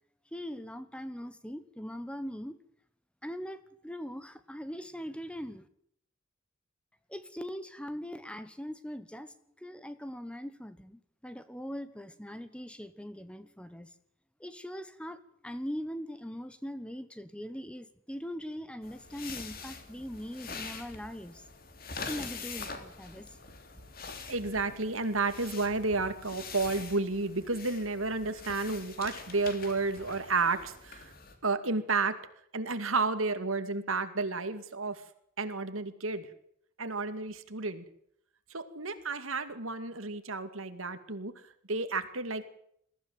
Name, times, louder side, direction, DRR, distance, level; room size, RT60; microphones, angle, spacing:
voice 1, 0.3-2.6 3.2-5.7 7.1-13.9 14.4-21.4 22.0-23.4, equal, 5° left, 12 dB, 1.1 m, -41 dB
sound 1, 18.8-31.3, left 4 dB, 45° left, 3.2 m, -44 dB
voice 2, 24.3-31.1 31.4-32.2 32.5-35.0 35.4-36.3 36.8-37.8 38.5-41.3 41.7-42.4, right 3 dB, 80° right, 10 dB, 2.3 m, -31 dB
21.5 x 15.0 x 9.4 m, 0.69 s
head